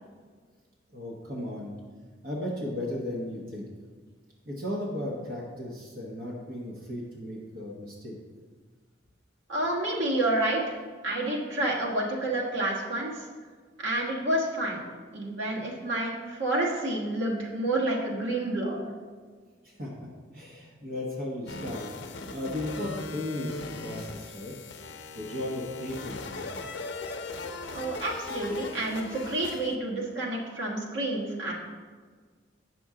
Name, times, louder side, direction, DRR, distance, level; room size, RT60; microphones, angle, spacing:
voice 1, 0.9-1.7 2.2-3.7 4.5-8.2 19.6-19.9 20.3-21.8 22.3-23.6 23.8-24.5 25.1-26.4, left 1 dB, 50° right, -3 dB, 1.1 m, -35 dB
voice 2, 9.5-10.8 11.0-13.2 13.8-14.8 15.1-18.8 27.7-31.5, right 1 dB, 80° right, -3 dB, 1.5 m, -29 dB
sound 1, 21.5-29.8, left 3 dB, 70° left, 0.6 m, -39 dB
8.5 x 6.0 x 3.7 m, 1.5 s
head